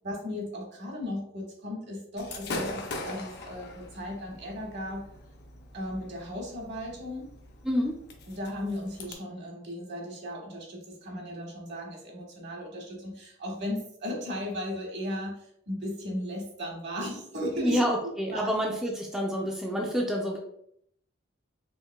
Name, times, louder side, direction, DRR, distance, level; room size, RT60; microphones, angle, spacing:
voice 1, 0.0-5.0 5.7-7.3 8.4-17.8 18.3-18.6, left 1 dB, 60° right, -1 dB, 1.3 m, -36 dB
Gunshot gunfire / Fireworks, 2.2-9.1, left 2 dB, 55° left, 0.6 m, -41 dB
voice 2, 7.6-8.0 17.6-20.4, equal, 5° right, -1 dB, 0.4 m, -28 dB
4.5 x 3.1 x 2.2 m, 0.70 s
head